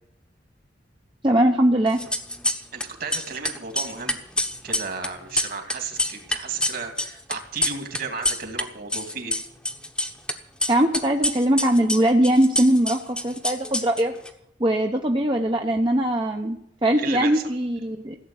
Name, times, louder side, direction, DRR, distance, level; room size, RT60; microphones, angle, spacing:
voice 1, 1.2-2.0 10.7-14.1 14.6-18.2, right 1 dB, 25° right, 2 dB, 0.9 m, -21 dB
sound 1, 1.9-2.8 3.1-8.6 8.9-10.3 10.6-14.3, left 1 dB, 5° left, 1.1 m, -26 dB
voice 2, 2.7-4.2 4.6-9.4 17.0-17.4, right 5 dB, 55° right, 5 dB, 2.5 m, -34 dB
16.0 x 7.9 x 9.6 m, 0.73 s
head